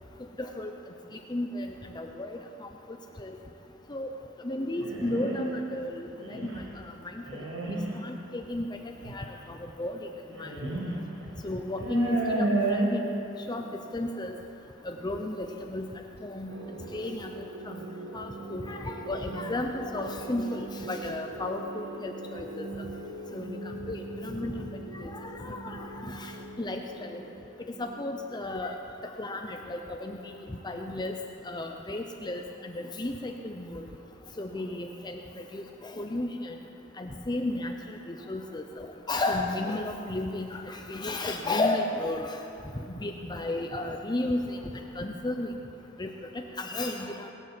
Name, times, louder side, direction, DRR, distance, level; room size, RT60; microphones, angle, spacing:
voice 1, 0.4-0.7 1.3-1.7 1.9-2.4 3.2-3.4 3.9-4.1 4.4-6.5 8.0-10.0 10.4-10.5 11.4-13.1 13.5-13.6 13.9-14.3 14.8-15.9 16.2-16.5 16.9-17.8 18.1-22.7 23.3-26.3 26.6-27.2 27.8-28.8 29.0-30.3 30.6-31.1 31.5-33.8 34.4-35.2 35.5-36.6 37.0-42.4 43.0-44.6 45.0-45.5 46.0-46.1 46.6-47.3, left 2 dB, 20° left, 4 dB, 0.7 m, -33 dB
sound 1, 4.8-5.5 6.2-6.6 7.2-7.8 9.0-9.2 10.3-10.9 11.2-11.3 11.8-12.8, right 2 dB, 85° right, 4.7 m, -31 dB
voice 2, 11.0-11.4 17.7-17.8 29.6-29.9 30.5-30.8 33.7-34.8 40.7-40.8 45.8-45.9 46.2-46.8, equal, 35° right, -6 dB, 4.9 m, -58 dB
sound 2, 16.5-29.3, right 2 dB, 65° right, 1.4 m, -42 dB
20.0 x 9.2 x 7.6 m, 2.8 s
head